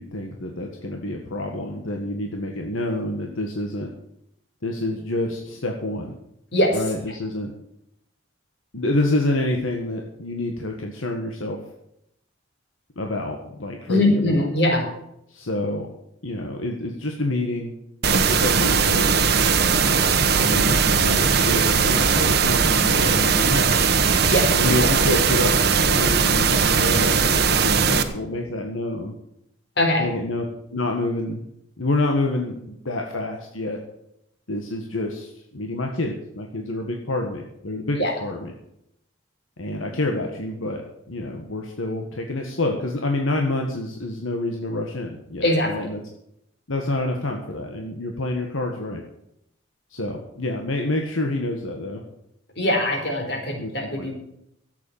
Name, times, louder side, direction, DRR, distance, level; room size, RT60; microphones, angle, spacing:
voice 1, 0.0-3.9 4.6-6.1 6.7-7.5 8.7-11.6 13.0-14.5 15.3-15.9 16.2-17.7 18.1-19.2 20.3-23.7 24.5-25.5 25.8-29.2 30.0-30.4 30.7-31.4 31.8-33.8 34.5-38.5 39.6-40.8 41.1-46.0 46.7-49.0 49.9-52.0 53.6-54.1, left 2 dB, 80° left, 2 dB, 1.6 m, -27 dB
voice 2, 13.9-14.9 24.3-24.5 29.8-30.1 38.0-38.1 45.4-45.9 52.6-54.1, left 1 dB, 55° left, 2 dB, 4.1 m, -21 dB
sound 1, 18.0-28.0, right 5 dB, 50° right, 1.1 m, -19 dB
13.0 x 8.4 x 8.7 m, 0.79 s
head